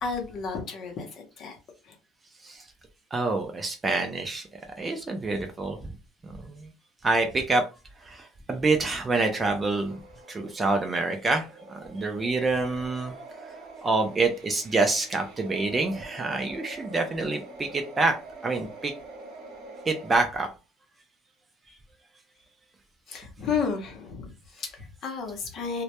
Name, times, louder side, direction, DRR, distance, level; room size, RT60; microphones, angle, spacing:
voice 1, 0.0-1.6 1.8-2.0 23.1-25.8, left 5 dB, 40° left, 0.6 m, -32 dB
voice 2, 3.1-4.5 4.8-5.9 6.2-6.7 7.0-7.6 8.0-10.0 10.3-13.1 13.8-18.1 18.4-18.9 19.9-20.5 21.7-21.8, right 3 dB, 15° right, 0.3 m, -27 dB
sound 1, 9.3-20.2, right 3 dB, 55° right, 0.8 m, -45 dB
2.1 x 2.1 x 2.8 m
cardioid pair, 155°, 0 cm